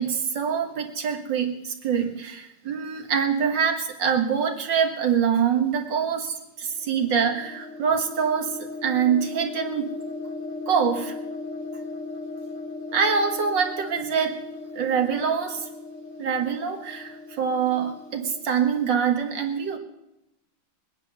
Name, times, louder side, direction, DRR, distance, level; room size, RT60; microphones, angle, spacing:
voice 1, 0.0-9.9 10.7-11.2 12.9-14.4 14.8-15.7 16.2-19.8, right 7 dB, 65° right, 4 dB, 2.2 m, -25 dB
sound 1, 6.6-18.5, left 3 dB, 40° left, 1.5 m, -37 dB
21.0 x 9.8 x 6.6 m, 0.87 s
omnidirectional pair, 2.2 m